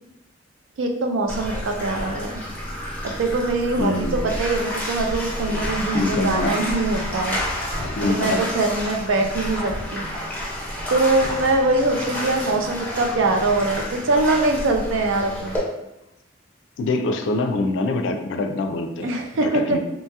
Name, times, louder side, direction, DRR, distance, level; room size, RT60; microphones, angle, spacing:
voice 1, 0.8-2.4 3.0-7.4 8.0-10.0 10.9-15.6 19.0-19.8, right 2 dB, 80° right, 3 dB, 0.4 m, -23 dB
Bathtub (filling or washing), 1.3-15.6, equal, 10° left, 0.5 m, -30 dB
voice 2, 3.8-4.2 5.5-5.7 5.9-6.5 8.0-8.4 16.8-19.1 19.4-19.8, left 2 dB, 70° left, 6 dB, 0.3 m, -24 dB
2.8 x 2.3 x 2.7 m, 0.91 s
head